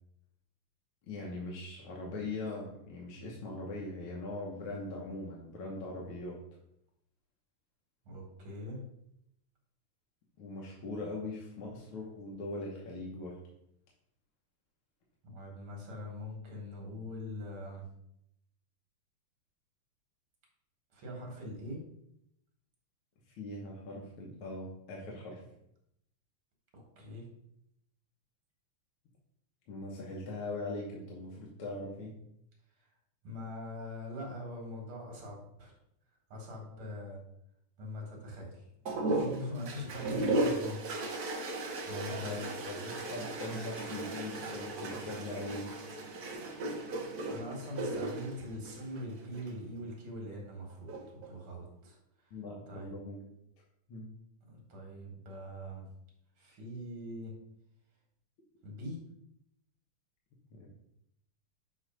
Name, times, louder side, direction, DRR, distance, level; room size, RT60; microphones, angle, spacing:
voice 1, 1.0-6.4 10.4-13.4 23.3-25.4 29.7-32.1 42.1-45.7 52.3-53.2 53.9-54.1 60.5-60.7, left 2 dB, 75° left, -3 dB, 1.9 m, -41 dB
voice 2, 8.1-8.8 15.2-17.9 20.9-21.8 26.7-27.2 33.2-35.7 36.3-37.2 37.8-38.6 39.1-40.8 41.9-42.7 47.3-52.0 52.7-53.0 54.5-55.9 56.4-57.3 58.6-59.0, left 1 dB, 80° right, 0 dB, 2.6 m, -42 dB
sound 1, 38.9-49.5 50.7-51.3, right 2 dB, 55° right, 1.4 m, -36 dB
7.6 x 3.1 x 5.1 m, 0.78 s
omnidirectional pair, 2.4 m